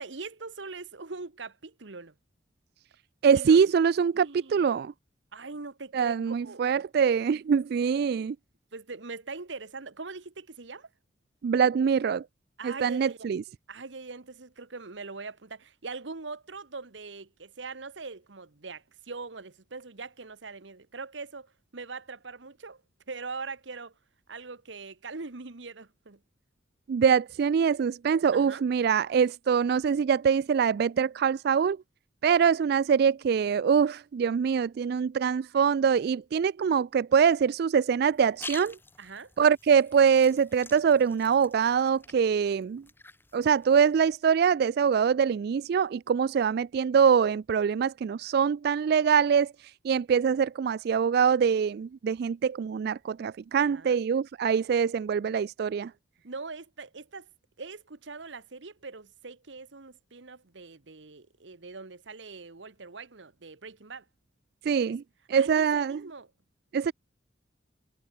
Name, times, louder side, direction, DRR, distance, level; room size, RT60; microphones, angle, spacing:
voice 1, 0.0-2.1 3.3-3.6 4.1-4.6 5.3-6.8 8.0-8.1 8.7-10.9 12.6-13.3 13.7-22.8 23.1-23.9 24.3-26.2 28.3-28.6 39.0-39.3 53.6-54.0 56.2-57.3 57.6-64.1 64.9-65.0 65.3-66.3, right 4 dB, 75° right, 1.3 m, -42 dB
voice 2, 3.2-4.9 5.9-8.4 11.4-12.2 12.6-13.4 26.9-31.8 32.2-38.8 39.4-42.8 43.3-55.9 64.6-65.0 65.3-66.0 66.7-66.9, right 7 dB, 55° right, 0.3 m, -24 dB
sound 1, 38.0-44.1, left 3 dB, 10° left, 2.9 m, -48 dB
head